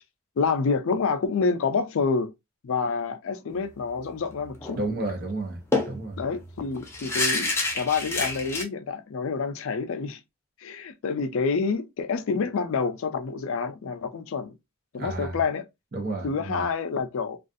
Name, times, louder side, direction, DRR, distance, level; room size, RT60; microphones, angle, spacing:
voice 1, 0.4-2.3 2.6-4.8 6.2-10.2 10.6-14.5 14.9-15.6 16.2-17.4, left 5 dB, 65° left, 0.4 m, -28 dB
sound 1, 4.6-4.8 5.1-5.2 5.7-8.7, left 2 dB, 10° left, 0.5 m, -28 dB
voice 2, 4.7-5.6 5.9-6.2 15.0-15.4 15.9-16.6, right 2 dB, 45° right, 0.8 m, -31 dB
2.4 x 2.4 x 2.5 m
head